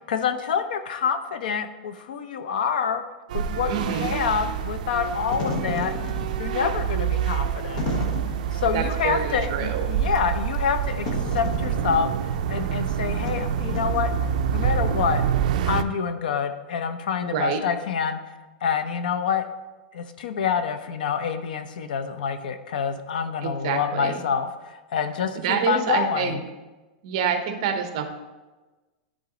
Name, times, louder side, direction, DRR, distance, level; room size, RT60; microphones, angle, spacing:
voice 1, 0.1-3.0 3.3-6.0 6.4-7.8 8.5-14.1 14.5-15.2 15.6-18.2 18.6-19.4 19.9-26.5, left 7 dB, 90° left, 9 dB, 0.7 m, -27 dB
sound 1, 3.3-15.8, right 9 dB, 65° right, 0.4 m, -27 dB
voice 2, 3.7-4.1 8.7-9.9 17.2-17.6 23.4-24.2 25.4-26.4 27.0-28.1, right 7 dB, 40° right, 7 dB, 0.8 m, -27 dB
Wind / Fire, 5.1-14.6, left 2 dB, 55° left, 1.3 m, -34 dB
11.0 x 3.9 x 3.9 m, 1.2 s
supercardioid pair, 175°, 5 cm